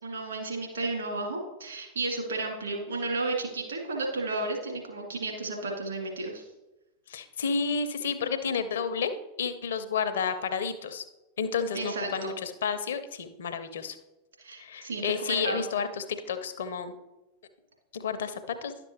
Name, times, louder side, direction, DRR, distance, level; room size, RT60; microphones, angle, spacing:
voice 1, 0.0-6.4 11.7-12.3 14.4-15.7, right 2 dB, 75° right, 1 dB, 2.1 m, -33 dB
voice 2, 7.1-9.1 9.4-11.0 11.4-14.0 14.6-16.9 17.9-18.7, left 6 dB, 60° left, 9 dB, 0.7 m, -31 dB
11.0 x 6.9 x 2.9 m, 1.0 s
figure-of-eight pair, 90°, 0 cm